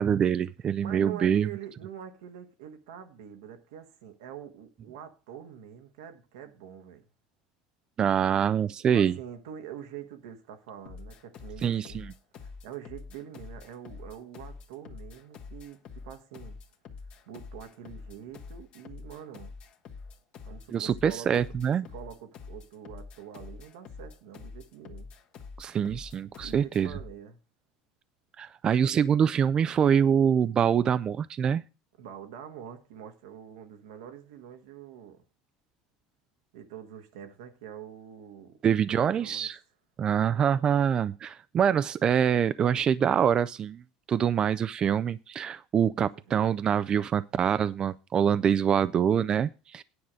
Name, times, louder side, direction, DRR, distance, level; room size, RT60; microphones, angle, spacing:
voice 1, 0.0-1.5 8.0-9.2 11.6-12.1 20.7-21.8 25.6-26.9 28.4-31.6 38.6-39.6 40.0-43.8 44.1-49.8, right 8 dB, 35° right, 0.4 m, -25 dB
voice 2, 0.8-7.0 8.9-12.0 12.3-16.6 17.3-19.5 20.4-21.5 21.9-25.1 26.4-27.4 32.0-35.2 36.5-38.6 38.9-39.5 46.3-46.4, right 9 dB, 90° right, 1.4 m, -45 dB
sound 1, 10.9-27.2, left 4 dB, 50° left, 1.4 m, -46 dB
9.7 x 4.9 x 7.4 m
supercardioid pair, 110°, 2 cm